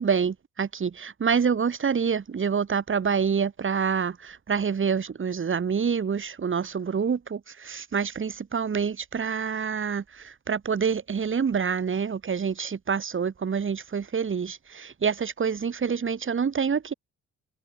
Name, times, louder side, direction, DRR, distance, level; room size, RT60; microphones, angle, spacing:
voice 1, 0.0-16.9, right 6 dB, 40° right, 5.1 m, -27 dB
cardioid pair, 90°, 30 cm